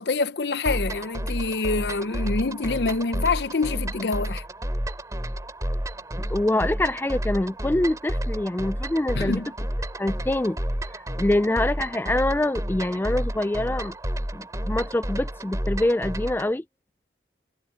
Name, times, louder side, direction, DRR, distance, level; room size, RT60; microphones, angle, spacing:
voice 1, 0.0-4.4 9.1-9.5, left 3 dB, 65° left, 0.7 m, -26 dB
sound 1, 0.7-16.5, equal, 20° right, 3.0 m, -31 dB
voice 2, 6.3-9.4 10.0-10.6 11.2-13.9 14.3-16.6, left 1 dB, 10° left, 0.3 m, -25 dB
head